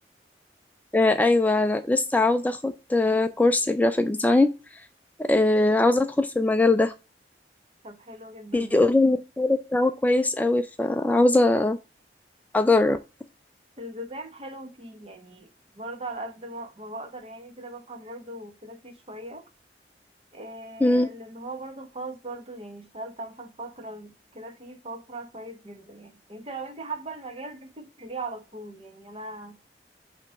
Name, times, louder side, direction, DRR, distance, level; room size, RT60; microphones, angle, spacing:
voice 1, 0.9-4.8 5.2-6.9 8.5-11.8 12.5-13.0 20.8-21.1, left 2 dB, 10° left, 0.3 m, -21 dB
voice 2, 7.8-8.9 13.8-19.5 20.3-29.6, right 2 dB, 35° right, 1.0 m, -39 dB
5.8 x 2.9 x 5.6 m
head